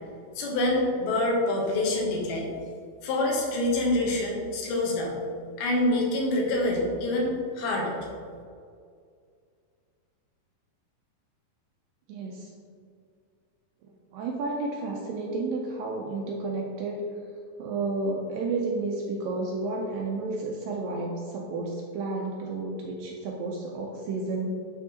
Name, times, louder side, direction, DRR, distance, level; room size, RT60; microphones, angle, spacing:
voice 1, 0.4-2.5 3.0-5.1 5.6-8.0, left 1 dB, 80° left, -2 dB, 3.0 m, -26 dB
voice 2, 12.1-12.5 14.1-17.0 17.6-24.5, right 3 dB, 80° right, -1 dB, 2.1 m, -31 dB
10.5 x 3.7 x 2.8 m, 2.2 s
omnidirectional pair, 4.4 m